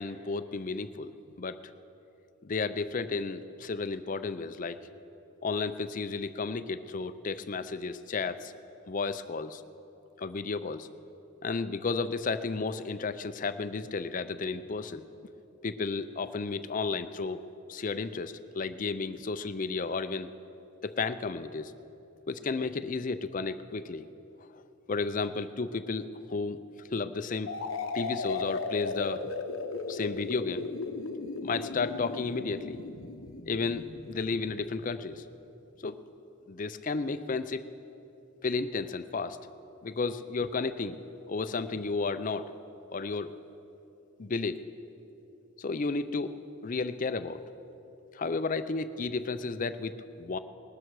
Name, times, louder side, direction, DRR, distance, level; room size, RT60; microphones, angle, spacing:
voice 1, 0.0-1.6 2.4-4.8 5.4-8.5 8.9-9.6 10.2-10.9 11.4-15.0 15.6-17.4 17.7-20.3 20.8-21.7 22.3-24.1 24.9-26.6 26.9-27.5 27.9-29.3 29.9-30.7 31.4-32.8 33.5-35.2 35.8-36.0 36.5-37.7 38.4-39.4 39.8-41.0 41.3-42.5 42.9-43.3 44.2-44.6 45.6-46.4 46.6-47.4 48.1-50.4, left 4 dB, 35° left, 11 dB, 0.5 m, -33 dB
sound 1, 27.5-35.1, left 3 dB, 70° left, 0.8 m, -36 dB
20.0 x 12.5 x 4.7 m, 3.0 s
head